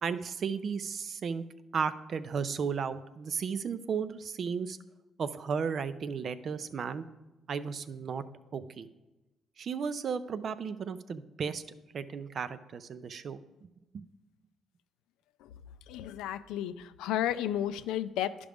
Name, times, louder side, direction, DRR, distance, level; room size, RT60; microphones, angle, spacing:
voice 1, 0.0-1.4 1.7-4.8 5.2-7.1 7.5-8.2 8.5-8.9 9.6-11.6 11.9-13.7 13.9-14.0, right 6 dB, 60° right, 13 dB, 0.5 m, -34 dB
voice 2, 15.9-18.5, left 11 dB, 85° left, 12 dB, 0.3 m, -33 dB
11.0 x 5.1 x 3.4 m, 1.1 s
supercardioid pair, 60°, 0 cm